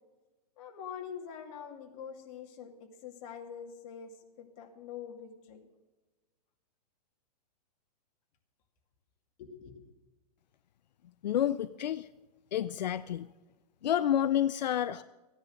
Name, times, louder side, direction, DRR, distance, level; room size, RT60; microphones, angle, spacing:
voice 1, 0.6-4.1 4.4-5.7 9.4-9.8, left 7 dB, 50° left, 3 dB, 2.4 m, -45 dB
voice 2, 11.2-12.1 12.5-13.3 13.8-15.0, left 10 dB, 90° left, 15 dB, 0.5 m, -29 dB
15.0 x 10.0 x 6.4 m, 1.2 s
hypercardioid pair, 135°, 21 cm